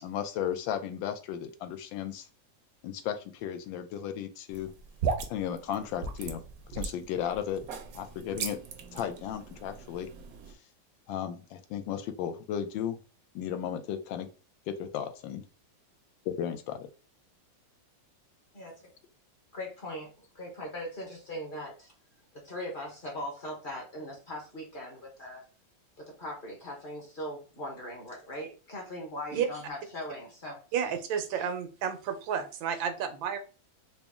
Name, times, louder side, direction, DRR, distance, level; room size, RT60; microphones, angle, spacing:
voice 1, 0.0-2.3 2.8-4.7 5.3-6.4 6.7-7.7 7.9-8.6 8.9-10.1 11.1-13.0 13.3-14.3 14.7-15.4 16.2-16.9, left 9 dB, 85° left, 9 dB, 1.3 m, -34 dB
sound 1, 4.5-10.5, right 5 dB, 70° right, 0.9 m, -37 dB
voice 2, 19.5-21.9 22.3-25.4 26.0-30.6, left 1 dB, 35° left, -1 dB, 0.9 m, -40 dB
voice 3, 30.7-33.4, right 8 dB, 90° right, 8 dB, 1.4 m, -31 dB
4.0 x 2.1 x 3.5 m, 0.35 s
omnidirectional pair, 2.0 m